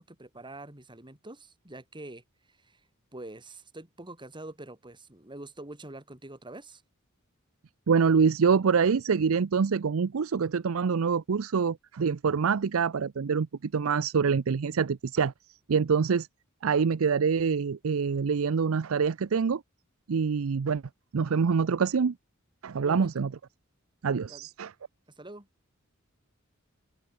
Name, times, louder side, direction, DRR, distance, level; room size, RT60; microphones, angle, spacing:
voice 1, 0.0-2.8 3.1-6.8 22.8-23.3 24.3-24.5 25.1-25.5, right 2 dB, 20° right, 3.3 m, -45 dB
voice 2, 7.9-15.3 15.7-16.3 16.6-19.6 20.1-20.8 21.1-22.1 22.6-23.3 24.0-24.7, right 5 dB, 75° right, 0.5 m, -25 dB
open air
head